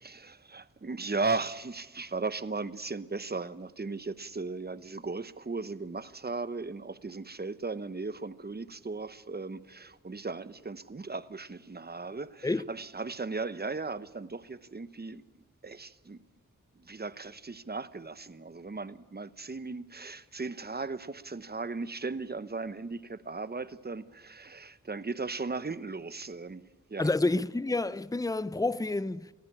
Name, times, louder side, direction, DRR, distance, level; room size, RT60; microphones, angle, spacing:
voice 1, 0.0-15.2 15.6-16.2 16.8-27.1, right 3 dB, 30° right, 0.9 m, -37 dB
voice 2, 27.0-29.3, left 2 dB, 10° left, 0.6 m, -29 dB
22.0 x 15.0 x 9.8 m
wide cardioid pair, 60°, 31 cm